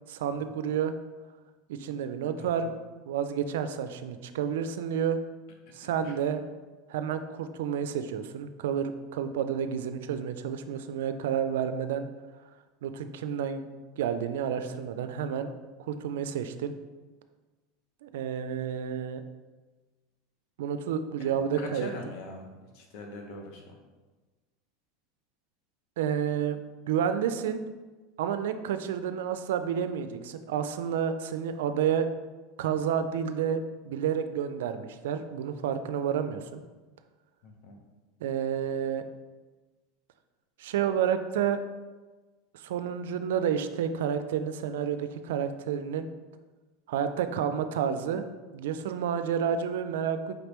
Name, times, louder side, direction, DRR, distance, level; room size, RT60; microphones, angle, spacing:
voice 1, 0.1-0.9 1.7-2.8 3.1-5.2 5.7-6.5 6.9-12.1 12.8-13.7 14.0-15.5 15.8-16.7 18.0-19.2 20.6-21.9 26.0-26.6 26.9-27.6 28.2-32.1 32.6-36.6 38.2-39.0 40.6-41.6 42.5-46.1 46.9-48.2 48.5-50.3, right 8 dB, 80° right, 10 dB, 0.3 m, -30 dB
voice 2, 2.4-2.7 6.0-6.1 21.2-21.4 21.7-23.7 37.4-37.8, left 2 dB, 60° left, 2 dB, 0.9 m, -43 dB
5.1 x 3.3 x 3.0 m, 1.3 s
supercardioid pair, 115°, 0 cm